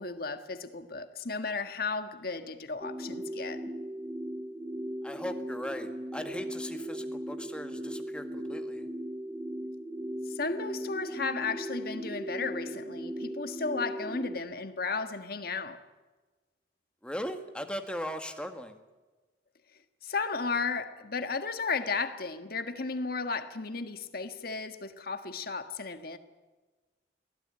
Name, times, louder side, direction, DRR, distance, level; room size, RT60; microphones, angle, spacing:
voice 1, 0.0-3.6 10.3-15.8 20.0-26.2, left 4 dB, 55° left, 1.6 m, -34 dB
sound 1, 2.8-14.4, equal, 15° right, 0.8 m, -38 dB
voice 2, 5.0-8.9 17.0-18.8, equal, 5° left, 1.7 m, -38 dB
23.0 x 17.0 x 9.0 m
head